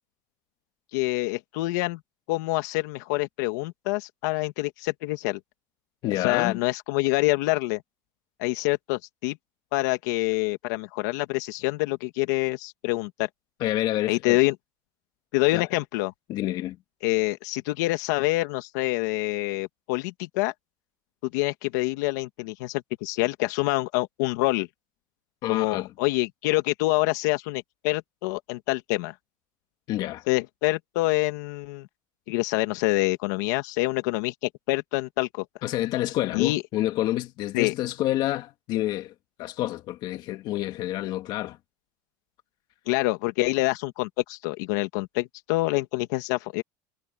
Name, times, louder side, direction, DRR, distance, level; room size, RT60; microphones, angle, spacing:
voice 1, 0.9-2.0 2.3-5.4 6.2-7.8 8.4-9.4 9.7-13.3 14.1-14.5 15.3-16.1 17.0-20.5 21.3-24.7 25.5-29.1 30.3-31.9 32.3-34.3 34.7-35.4 36.3-36.6 37.5-37.7 42.9-46.6, left 21 dB, 75° left, 2.2 m, -26 dB
voice 2, 6.0-6.6 13.6-14.4 15.5-15.7 16.3-16.8 25.4-25.9 29.9-30.2 35.6-39.1 39.4-41.6, left 15 dB, 50° left, 2.0 m, -28 dB
supercardioid pair, 145°, 10 cm